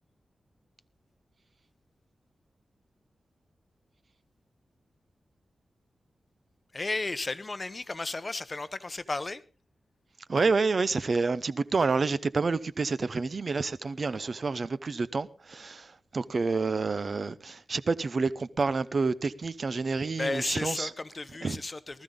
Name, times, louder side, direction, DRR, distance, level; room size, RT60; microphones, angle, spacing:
voice 1, 6.7-9.4 20.2-22.0, left 3 dB, 25° left, 0.8 m, -33 dB
voice 2, 10.3-20.9 21.4-21.6, right 4 dB, 45° right, 0.7 m, -28 dB
19.5 x 13.5 x 3.8 m
wide cardioid pair, 150°, 0 cm